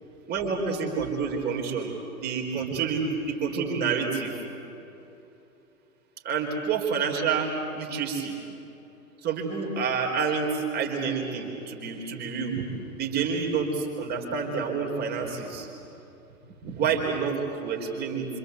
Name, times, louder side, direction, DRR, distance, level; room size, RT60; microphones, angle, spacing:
voice 1, 0.3-1.9 2.2-4.4 6.2-8.3 9.2-12.7 13.0-15.7 16.6-18.3, right 5 dB, 20° right, 1 dB, 4.3 m, -28 dB
27.0 x 26.5 x 8.3 m, 2.9 s
figure-of-eight pair, 110°, 43 cm